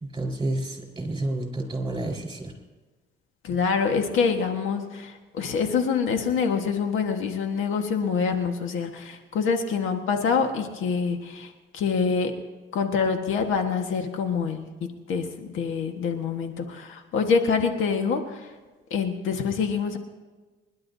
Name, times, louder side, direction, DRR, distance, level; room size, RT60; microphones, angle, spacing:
voice 1, 0.1-2.5, right 2 dB, 20° right, 2 dB, 4.5 m, -30 dB
voice 2, 3.4-12.3 12.7-14.6 15.1-18.4 18.9-20.0, left 5 dB, 85° left, 5 dB, 1.5 m, -26 dB
27.0 x 11.0 x 2.8 m, 1.3 s
cardioid pair, 90°, 20 cm